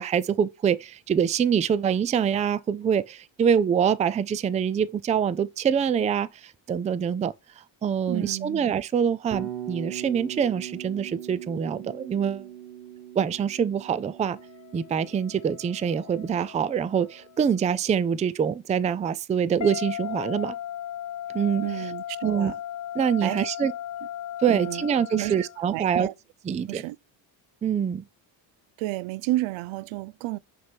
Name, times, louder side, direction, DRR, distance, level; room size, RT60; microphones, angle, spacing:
voice 1, 0.0-12.5 13.2-14.4 14.7-20.5 21.3-21.6 22.2-22.5 23.0-23.7 24.4-26.1 26.5-26.8 27.6-28.0, right 7 dB, 15° right, 0.3 m, -25 dB
voice 2, 8.1-8.6 21.6-22.6 23.2-23.5 24.5-24.9 25.1-26.1 26.7-27.0 28.8-30.4, right 18 dB, 80° right, 0.5 m, -31 dB
Bass guitar, 9.3-17.4, right 11 dB, 60° right, 2.2 m, -41 dB
sound 1, 14.3-17.5 19.6-25.7, left 11 dB, 40° left, 0.7 m, -37 dB
6.4 x 5.3 x 4.5 m
cardioid pair, 105°, 47 cm